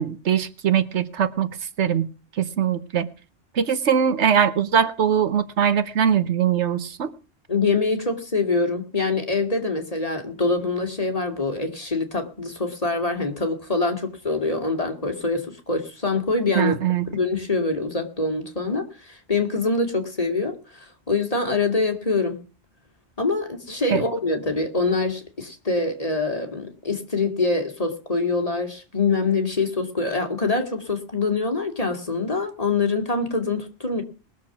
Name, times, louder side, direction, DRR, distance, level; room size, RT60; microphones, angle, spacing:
voice 1, 0.0-1.5 1.8-2.1 2.4-3.1 3.5-7.1 16.5-17.1 23.9-24.0, right 8 dB, 80° right, 1.3 m, -21 dB
voice 2, 7.5-16.8 17.1-22.4 23.2-34.0, left 3 dB, 35° left, 2.2 m, -25 dB
20.5 x 7.1 x 5.9 m
omnidirectional pair, 1.2 m